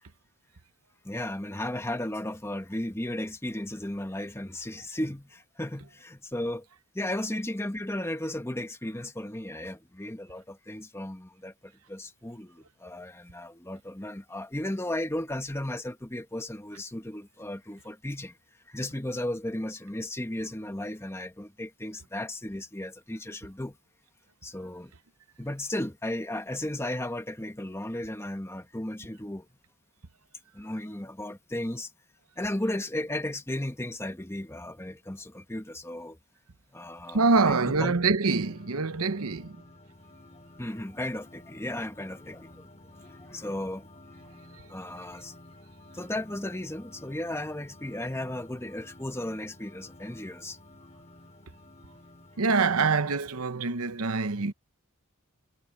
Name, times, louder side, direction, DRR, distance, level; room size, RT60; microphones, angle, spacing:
voice 1, 1.0-6.6 6.9-18.4 18.7-23.8 24.4-24.9 25.4-29.5 30.5-31.9 32.4-36.2 36.7-38.0 40.6-43.9 44.7-45.4 45.9-50.6, left 1 dB, 10° left, 1.3 m, -35 dB
voice 2, 37.1-39.6 44.5-44.6 52.4-54.5, right 4 dB, 75° right, 0.9 m, -25 dB
sound 1, 38.4-53.1, left 1 dB, 30° left, 3.7 m, -52 dB
head